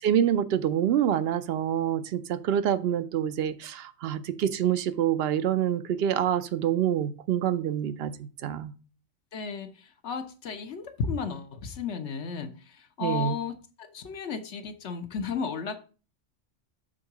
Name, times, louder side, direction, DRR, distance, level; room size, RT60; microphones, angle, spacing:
voice 1, 0.0-8.7 13.0-13.3, right 10 dB, 60° right, 13 dB, 0.8 m, -26 dB
voice 2, 9.3-15.8, left 5 dB, 70° left, 7 dB, 1.1 m, -34 dB
6.4 x 3.8 x 5.8 m, 0.35 s
omnidirectional pair, 1.2 m